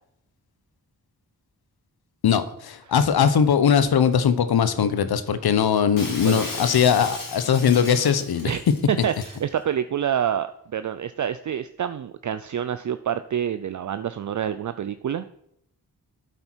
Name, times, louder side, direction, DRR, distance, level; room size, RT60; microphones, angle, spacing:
voice 1, 2.2-8.5, left 7 dB, 85° left, 12 dB, 0.8 m, -20 dB
Shatter, 6.0-9.4, left 3 dB, 60° left, 2.5 m, -36 dB
voice 2, 8.9-15.3, right 9 dB, 55° right, 11 dB, 0.5 m, -27 dB
8.6 x 8.1 x 4.5 m, 0.73 s
cardioid pair, 45°, 37 cm